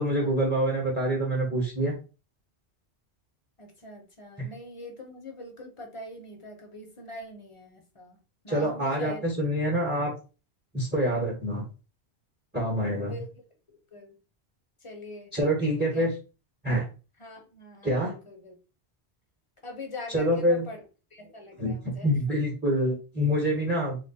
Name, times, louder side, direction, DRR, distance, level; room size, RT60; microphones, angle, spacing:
voice 1, 0.0-2.0 8.5-10.1 10.7-11.6 12.5-13.2 15.3-16.1 16.6-16.8 17.8-18.1 20.1-20.7 21.6-24.0, equal, 10° right, -1 dB, 0.8 m, -26 dB
voice 2, 3.6-9.2 13.0-13.3 13.9-14.1 14.8-15.3 15.9-16.1 17.2-18.5 19.6-20.8 21.1-22.1, left 1 dB, 30° left, 2 dB, 0.9 m, -43 dB
2.9 x 2.4 x 4.0 m, 0.33 s
omnidirectional pair, 1.1 m